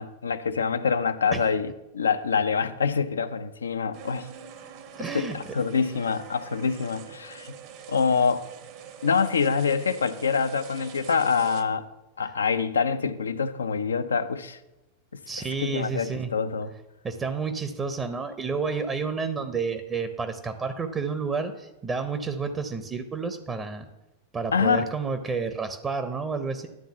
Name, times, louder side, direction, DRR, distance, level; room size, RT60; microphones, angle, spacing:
voice 1, 0.0-4.3 5.0-7.6 7.9-8.5 9.0-11.8 12.2-14.6 15.1-15.2 15.6-16.7 24.5-24.9, left 5 dB, 70° left, 0.5 m, -25 dB
sound 1, 3.9-11.6, right 8 dB, 45° right, 0.9 m, -45 dB
voice 2, 5.0-5.4 15.3-16.3 17.0-23.9 24.3-26.7, right 5 dB, 20° right, 0.7 m, -30 dB
10.5 x 3.8 x 7.1 m
figure-of-eight pair, 90°, 0 cm